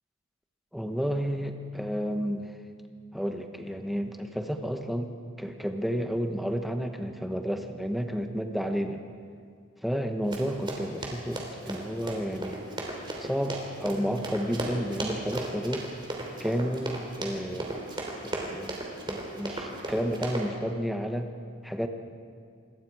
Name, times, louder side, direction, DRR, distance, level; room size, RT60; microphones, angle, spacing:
voice 1, 0.7-2.5 3.1-9.0 9.8-12.6 13.2-15.9 16.4-17.7 18.2-18.8 19.1-21.3 21.6-21.9, equal, ahead, 5 dB, 1.1 m, -31 dB
Run, 10.3-20.5, right 1 dB, 25° right, 3.0 m, -35 dB
27.0 x 21.0 x 4.8 m, 2.2 s
head